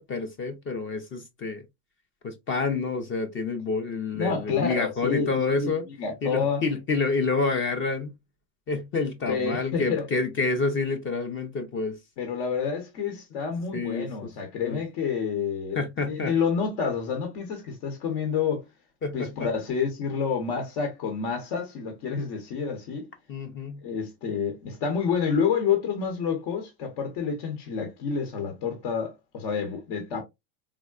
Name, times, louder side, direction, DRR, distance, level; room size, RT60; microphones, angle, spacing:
voice 1, 0.0-1.6 2.2-5.9 6.2-8.1 8.7-11.9 13.7-14.1 14.6-14.8 15.8-16.3 19.0-19.5 23.3-23.8, left 4 dB, 30° left, 0.4 m, -28 dB
voice 2, 4.1-5.3 5.6-6.6 9.3-10.1 12.2-18.6 19.1-23.1 23.8-30.2, left 6 dB, 65° left, 1.0 m, -28 dB
3.5 x 2.1 x 2.3 m
supercardioid pair, 120°, 46 cm